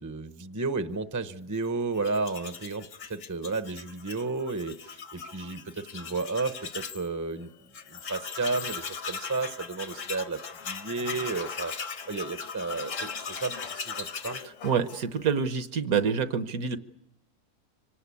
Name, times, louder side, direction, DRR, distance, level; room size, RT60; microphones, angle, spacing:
voice 1, 0.0-7.5 7.9-10.4 10.6-11.7 12.1-14.4, right 3 dB, 20° right, 10 dB, 0.6 m, -32 dB
Tools, 1.9-7.1 7.4-7.5 7.7-15.3, left 5 dB, 60° left, 1.4 m, -39 dB
voice 2, 14.6-16.8, right 6 dB, 70° right, 11 dB, 1.5 m, -27 dB
25.5 x 18.5 x 8.4 m, 0.87 s
omnidirectional pair, 1.6 m